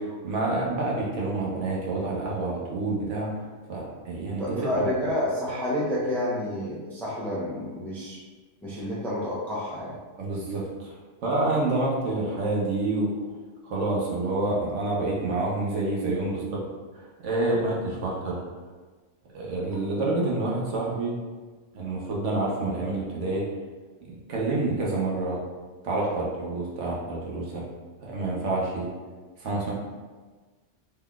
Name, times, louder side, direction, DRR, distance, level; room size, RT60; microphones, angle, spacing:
voice 1, 0.0-3.3 3.7-4.9 10.2-10.9 11.2-13.1 13.6-16.6 16.9-18.4 19.3-21.1 21.7-23.4 24.0-25.4 25.8-27.6 28.0-28.9 29.4-29.7, right 2 dB, 75° right, -4 dB, 1.1 m, -28 dB
voice 2, 4.4-8.2 8.6-10.0, left 1 dB, ahead, -6 dB, 0.4 m, -29 dB
3.7 x 3.2 x 2.3 m, 1.4 s
omnidirectional pair, 1.3 m